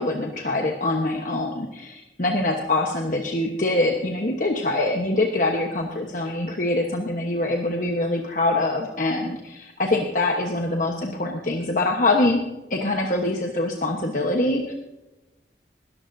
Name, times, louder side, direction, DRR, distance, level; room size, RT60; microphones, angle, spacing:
voice 1, 0.0-12.4 12.7-14.7, left 2 dB, 45° left, 2 dB, 1.1 m, -24 dB
20.0 x 13.5 x 2.7 m, 0.98 s
head